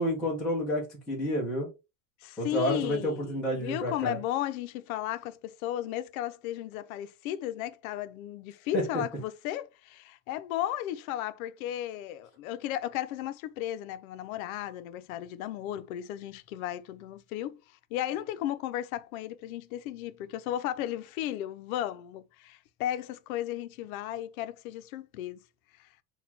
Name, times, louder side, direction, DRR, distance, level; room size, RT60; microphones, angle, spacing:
voice 1, 0.0-1.7 2.4-4.2 8.7-8.8, equal, 5° left, 0.3 m, -29 dB
voice 2, 2.2-17.6 17.9-25.4 25.8-25.9, left 12 dB, 70° left, 0.6 m, -35 dB
4.3 x 2.3 x 3.9 m
supercardioid pair, 180°, 44 cm